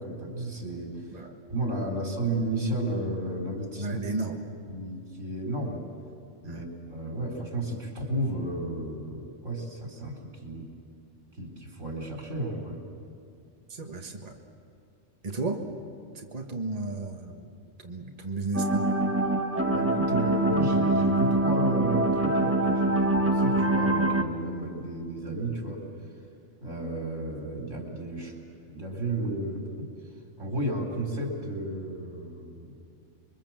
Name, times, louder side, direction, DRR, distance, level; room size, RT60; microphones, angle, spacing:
voice 1, 0.0-1.1 1.5-4.0 4.7-5.8 6.4-10.7 11.4-12.8 19.7-25.8 26.6-28.4 28.6-29.9 30.4-32.8, right 1 dB, 85° right, 0 dB, 4.2 m, -33 dB
voice 2, 3.8-4.4 6.4-6.7 13.7-14.4 15.2-15.7 16.1-17.6 17.8-18.9, right 3 dB, 30° right, 2 dB, 1.7 m, -34 dB
sound 1, 18.5-24.2, right 2 dB, 10° right, 1.0 m, -24 dB
27.5 x 23.0 x 7.4 m, 2.5 s
omnidirectional pair, 1.3 m